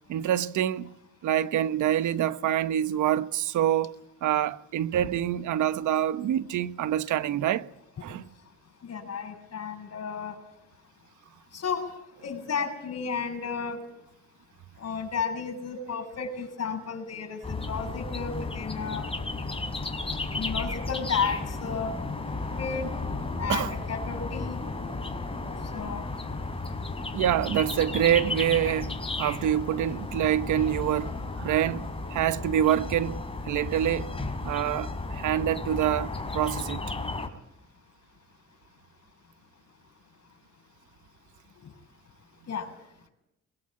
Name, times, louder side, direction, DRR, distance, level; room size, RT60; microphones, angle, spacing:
voice 1, 0.1-0.9 1.2-3.9 4.2-7.7 8.0-8.2 23.5-23.7 27.1-28.9 29.2-34.1 34.4-36.8, right 11 dB, 80° right, 1.2 m, -26 dB
voice 2, 8.8-10.4 11.5-11.9 12.2-13.8 14.8-19.1 20.4-22.0 22.6-22.9 23.4-24.6 25.7-26.0 42.5-42.7, left 6 dB, 55° left, 7.3 m, -32 dB
sound 1, 17.4-37.3, left 3 dB, 20° left, 4.2 m, -34 dB
22.0 x 22.0 x 8.8 m
cardioid pair, 90°, 30 cm